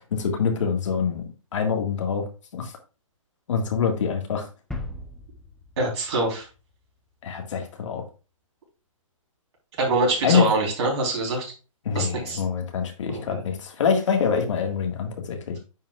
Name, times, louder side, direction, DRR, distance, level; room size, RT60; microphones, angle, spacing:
voice 1, 0.1-1.2 1.5-2.3 2.5-2.7 3.5-4.5 7.2-8.0 10.2-10.5 11.8-15.6, left 6 dB, 60° left, 4 dB, 1.8 m, -25 dB
sound 1, 4.7-7.4, left 2 dB, ahead, 0.7 m, -39 dB
voice 2, 5.8-6.5 9.8-11.5 11.9-12.4 13.1-13.4, right 2 dB, 50° right, -1 dB, 3.9 m, -24 dB
9.7 x 5.6 x 2.4 m, 0.33 s
hypercardioid pair, 140°, 18 cm